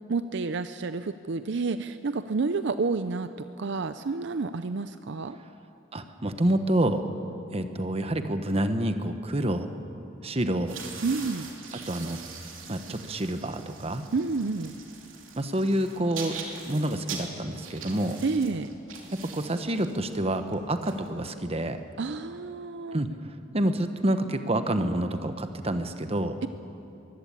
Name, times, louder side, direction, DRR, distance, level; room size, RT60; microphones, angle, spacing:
voice 1, 0.1-3.3 3.6-5.4 11.0-11.5 14.1-14.7 18.2-18.7 22.0-23.0, right 4 dB, 60° right, 11 dB, 0.5 m, -29 dB
voice 2, 5.9-7.0 7.5-9.7 10.2-10.7 11.9-12.2 12.7-14.0 15.4-16.4 16.7-18.2 19.1-21.8 22.9-26.4, right 1 dB, 30° right, 8 dB, 1.1 m, -28 dB
sound 1, 10.6-21.6, right 5 dB, 80° right, 2.9 m, -43 dB
22.5 x 16.0 x 8.5 m, 2.8 s
head